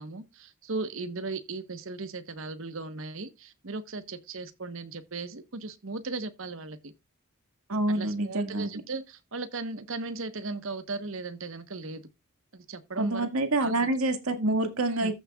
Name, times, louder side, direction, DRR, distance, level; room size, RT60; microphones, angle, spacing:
voice 1, 0.0-6.9 7.9-12.1 12.5-13.3 13.6-13.8 14.9-15.1, right 3 dB, 65° right, 1.1 m, -37 dB
voice 2, 7.7-8.7 13.0-15.1, right 2 dB, 85° right, 2.0 m, -27 dB
14.5 x 6.6 x 2.3 m
head